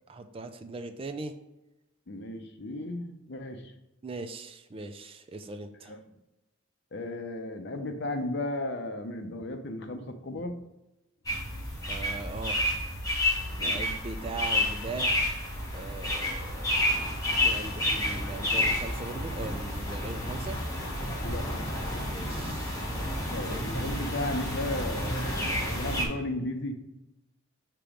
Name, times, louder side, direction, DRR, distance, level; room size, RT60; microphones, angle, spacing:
voice 1, 0.1-1.3 4.0-6.0 11.9-12.7 13.5-15.4 15.7-16.8 17.4-20.6 22.1-22.9, right 3 dB, 25° right, 8 dB, 0.3 m, -40 dB
voice 2, 2.1-3.6 5.9-6.0 6.9-10.6 13.6-13.8 21.2-21.6 23.3-26.8, left 1 dB, 55° left, 6 dB, 0.7 m, -35 dB
sound 1, 11.3-26.1, left 1 dB, 15° left, 1.1 m, -30 dB
6.7 x 3.0 x 4.9 m, 0.95 s
head